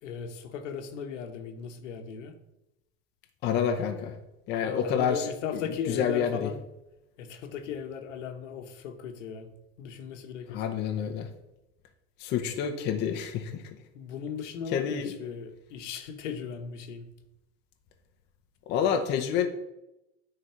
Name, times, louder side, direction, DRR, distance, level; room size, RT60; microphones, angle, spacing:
voice 1, 0.0-2.3 4.6-6.6 7.2-9.5 9.8-10.6 13.9-17.1, left 6 dB, 80° left, 7 dB, 1.2 m, -37 dB
voice 2, 3.4-4.1 4.5-5.2 5.5-5.6 5.9-6.5 10.5-11.3 12.2-13.6 14.7-15.1 18.7-19.5, left 8 dB, 30° left, 5 dB, 0.7 m, -28 dB
9.5 x 4.0 x 5.7 m, 0.91 s
supercardioid pair, 155°, 36 cm